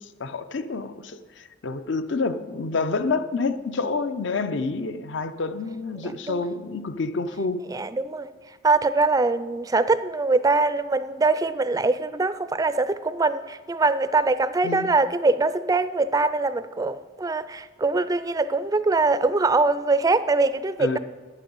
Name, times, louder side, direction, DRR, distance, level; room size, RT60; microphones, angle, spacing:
voice 1, 0.0-7.6 14.6-14.9 20.8-21.0, left 3 dB, 65° left, 12 dB, 0.6 m, -28 dB
voice 2, 7.7-8.3 8.6-21.0, right 3 dB, 20° right, 14 dB, 0.4 m, -23 dB
10.0 x 9.0 x 7.2 m, 1.4 s
head